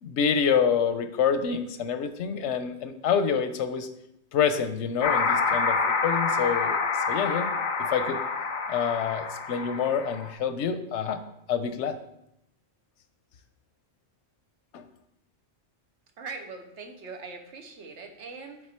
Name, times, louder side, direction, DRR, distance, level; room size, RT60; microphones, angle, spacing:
voice 1, 0.0-3.9 4.3-6.8 7.1-7.5 7.8-8.2 8.7-11.2 11.5-12.0 14.7-14.8, left 7 dB, 90° left, 9 dB, 0.9 m, -27 dB
sound 1, 5.0-10.3, left 4 dB, 55° left, 0.6 m, -27 dB
voice 2, 16.2-18.6, right 4 dB, 85° right, 4 dB, 1.2 m, -41 dB
7.9 x 3.8 x 4.3 m, 0.80 s
omnidirectional pair, 1.2 m